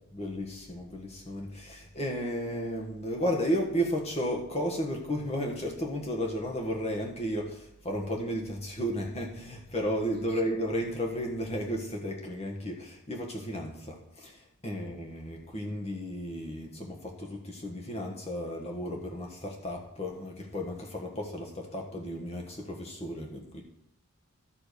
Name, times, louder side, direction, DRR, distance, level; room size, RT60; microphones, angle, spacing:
voice 1, 0.0-23.6, equal, 30° left, 0 dB, 1.3 m, -33 dB
12.5 x 4.8 x 6.8 m, 0.79 s
head